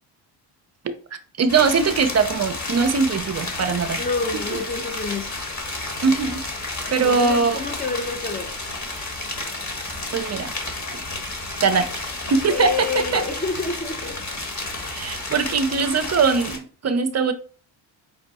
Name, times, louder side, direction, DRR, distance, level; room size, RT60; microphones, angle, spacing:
voice 1, 1.4-4.0 4.5-4.6 6.0-6.4 6.9-7.6 10.1-10.5 11.6-12.0 12.3-12.9 13.1-13.2 14.7-17.3, right 5 dB, 35° right, 0.5 m, -21 dB
sound 1, 1.5-16.6, left 2 dB, 35° left, 1.4 m, -31 dB
voice 2, 4.0-5.3 7.0-8.5 12.5-14.2, left 4 dB, 20° left, 0.5 m, -28 dB
5.4 x 2.2 x 4.0 m
supercardioid pair, 80°, 48 cm